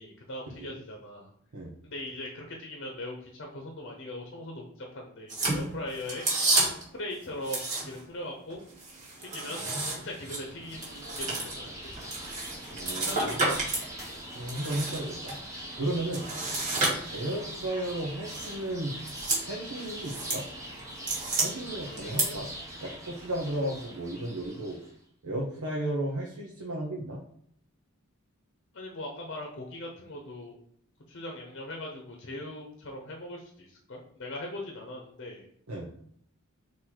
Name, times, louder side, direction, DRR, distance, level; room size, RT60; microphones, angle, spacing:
voice 1, 0.0-1.3 1.8-6.3 6.9-8.6 9.2-9.6 9.9-12.1 13.0-13.8 21.7-22.4 28.7-30.5 31.1-35.4, left 1 dB, 50° left, 1 dB, 0.9 m, -40 dB
sound 1, 5.3-6.9 7.4-8.1 8.5-13.9 14.2-15.3 16.1-17.4 18.2-18.5 18.9-19.4 19.8-20.4 20.8-21.5 22.0-22.2, right 2 dB, 35° right, 1.6 m, -31 dB
sound 2, 9.8-24.9, equal, 15° right, 1.1 m, -43 dB
voice 2, 12.7-13.6 14.0-15.4 15.7-16.3 17.1-20.4 21.4-22.5 22.8-24.8 25.2-27.2 35.7-35.9, right 1 dB, 80° right, -3 dB, 0.8 m, -34 dB
4.0 x 2.9 x 4.4 m, 0.65 s
head